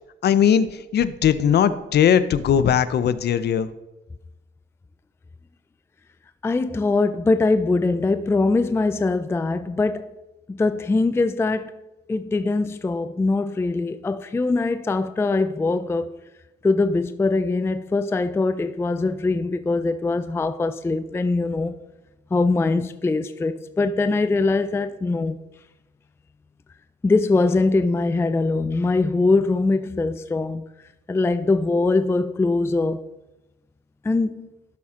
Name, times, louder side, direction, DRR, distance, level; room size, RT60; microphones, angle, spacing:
voice 1, 0.2-0.7 0.9-3.7, left 8 dB, 55° left, 0.6 m, -19 dB
voice 2, 6.4-10.1 10.5-11.7 12.1-16.1 16.6-21.8 22.3-25.4 27.0-30.6 31.1-33.0 34.0-34.5, left 3 dB, 10° left, 0.3 m, -22 dB
11.5 x 5.8 x 3.7 m
cardioid pair, 90°, 20 cm